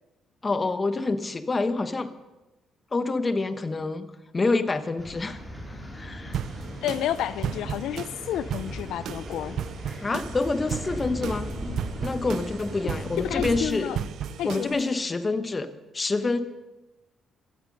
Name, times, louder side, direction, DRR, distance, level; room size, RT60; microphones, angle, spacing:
voice 1, 0.4-2.1 2.9-4.1 4.3-5.4 5.7-6.4 10.0-11.5 12.0-14.0 14.4-16.4, left 3 dB, 30° left, 10 dB, 1.2 m, -27 dB
sound 1, 5.0-13.6, equal, 5° left, 4.6 m, -37 dB
sound 2, 6.3-15.0, right 9 dB, 75° right, 0.7 m, -35 dB
voice 2, 6.8-9.6 13.2-14.0 14.4-14.8, left 11 dB, 85° left, 15 dB, 0.6 m, -30 dB
17.0 x 13.5 x 5.4 m, 1.0 s
cardioid pair, 90°, 0 cm